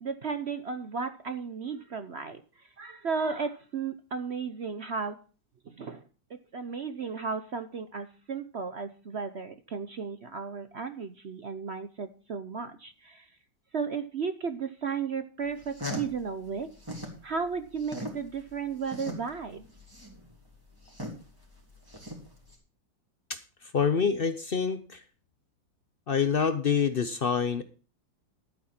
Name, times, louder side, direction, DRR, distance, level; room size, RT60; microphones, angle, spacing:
voice 1, 0.0-2.4 2.8-5.2 5.7-6.0 6.5-13.2 13.7-16.7 17.2-19.6, right 5 dB, 55° right, 9 dB, 0.7 m, -34 dB
sound 1, 15.5-17.2 17.5-22.5, equal, 10° right, 3.0 m, -39 dB
voice 2, 23.3-25.0 26.1-27.6, left 6 dB, 65° left, 11 dB, 0.5 m, -27 dB
12.0 x 8.8 x 4.3 m, 0.38 s
omnidirectional pair, 2.0 m